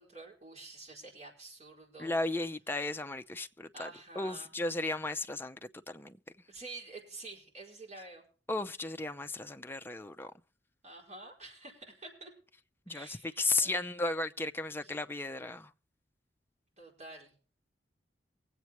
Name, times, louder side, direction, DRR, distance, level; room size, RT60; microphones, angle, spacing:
voice 1, 0.0-2.2 3.7-4.5 6.5-8.2 10.8-12.3 12.9-14.3 14.8-14.9 16.7-17.3, right 2 dB, 40° right, 4.9 m, -49 dB
voice 2, 2.0-3.9 4.2-5.6 5.9-6.2 8.5-10.3 12.9-15.7, left 2 dB, 10° left, 0.6 m, -34 dB
23.5 x 8.3 x 3.0 m
head